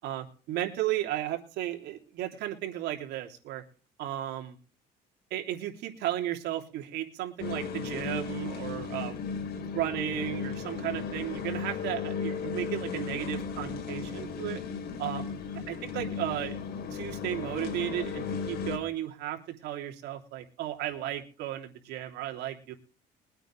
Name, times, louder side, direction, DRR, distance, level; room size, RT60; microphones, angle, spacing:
voice 1, 0.0-3.6 4.0-4.6 5.3-9.2 9.6-14.6 15.0-15.3 15.7-16.5 16.9-22.7, right 13 dB, 85° right, 3 dB, 3.1 m, -34 dB
sound 1, 7.4-18.8, left 6 dB, 70° left, 4.1 m, -35 dB
23.0 x 9.0 x 3.3 m, 0.40 s
cardioid pair, 110°, 17 cm